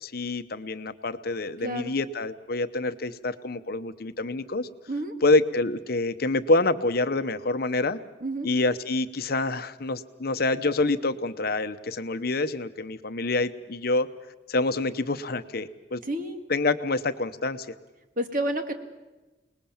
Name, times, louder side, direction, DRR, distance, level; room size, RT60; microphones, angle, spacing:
voice 1, 0.0-4.7 5.2-8.0 8.4-14.1 14.5-16.0 16.5-17.7, left 2 dB, 55° left, 11 dB, 0.9 m, -26 dB
voice 2, 1.6-1.9 4.9-5.1 8.2-8.5 16.0-16.4 18.2-18.7, right 1 dB, 45° right, 6 dB, 2.1 m, -30 dB
28.0 x 20.0 x 7.2 m, 1.1 s
head